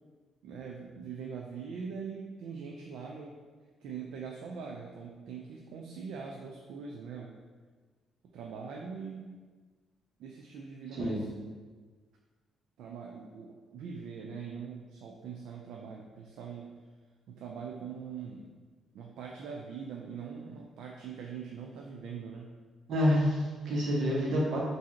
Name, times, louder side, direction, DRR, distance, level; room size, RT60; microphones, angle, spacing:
voice 1, 0.4-3.4 3.8-7.4 8.3-9.4 10.2-11.3 12.8-16.8 17.3-18.5 18.9-22.6, right 6 dB, 80° right, 0 dB, 0.4 m, -42 dB
voice 2, 22.9-24.6, equal, 65° right, -3 dB, 1.2 m, -27 dB
3.6 x 2.7 x 4.4 m, 1.4 s
cardioid pair, 90°, 0 cm